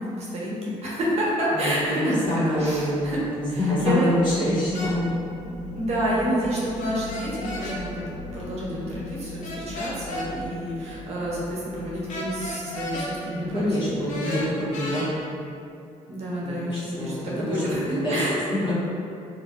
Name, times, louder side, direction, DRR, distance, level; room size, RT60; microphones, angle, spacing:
voice 1, 0.0-2.3 2.6-3.2 3.5-4.1 5.7-14.1 16.1-18.3, equal, 60° right, -6 dB, 0.8 m, -29 dB
voice 2, 1.5-2.0 2.3-3.1 3.4-5.0 13.4-15.1 16.4-18.2 18.6-18.7, left 1 dB, 35° left, -9 dB, 1.0 m, -26 dB
sound 1, 2.1-15.3, left 1 dB, 5° left, 1.0 m, -41 dB
sound 2, 4.7-4.9 6.8-7.8 9.4-10.3 12.1-13.1 14.1-15.1, left 1 dB, 80° left, 0.5 m, -33 dB
2.9 x 2.6 x 2.4 m, 2.6 s
cardioid pair, 90°, 13 cm